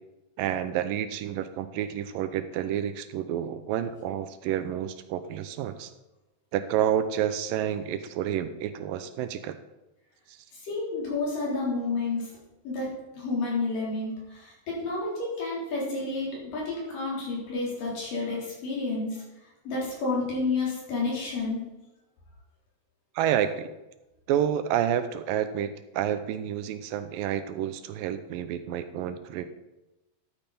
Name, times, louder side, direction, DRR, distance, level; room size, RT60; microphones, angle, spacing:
voice 1, 0.4-5.9 6.5-9.5 23.2-23.7 24.3-29.5, right 10 dB, 85° right, 11 dB, 2.3 m, -29 dB
voice 2, 10.5-12.3 12.6-19.2 19.7-21.7, left 3 dB, 70° left, -5 dB, 5.5 m, -30 dB
12.5 x 8.9 x 4.2 m, 0.99 s
omnidirectional pair, 4.0 m